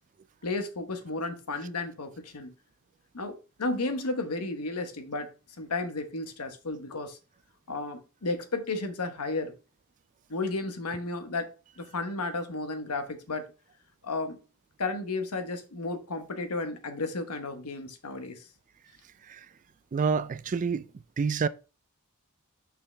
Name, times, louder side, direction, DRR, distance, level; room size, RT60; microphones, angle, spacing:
voice 1, 0.4-2.5 3.1-5.3 5.6-7.2 7.7-9.5 10.3-11.5 11.8-13.4 14.0-14.4 14.8-18.5, left 3 dB, 85° left, 1.2 m, -33 dB
voice 2, 19.9-20.8 21.2-21.5, right 5 dB, 35° right, 0.3 m, -27 dB
6.5 x 5.6 x 3.3 m
head